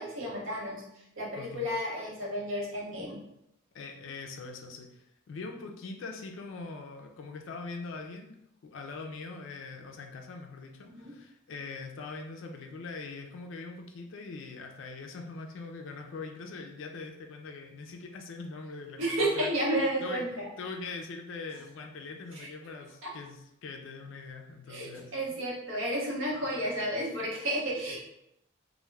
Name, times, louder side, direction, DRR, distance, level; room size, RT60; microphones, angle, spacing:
voice 1, 0.0-3.2 10.8-11.1 19.0-20.5 22.3-22.5 23.0-23.1 24.7-28.0, right 1 dB, 75° right, -4 dB, 0.8 m, -32 dB
voice 2, 1.3-1.7 3.7-8.4 8.6-19.5 20.0-25.1, left 4 dB, 65° left, 3 dB, 0.3 m, -42 dB
2.2 x 2.1 x 3.1 m, 0.81 s
head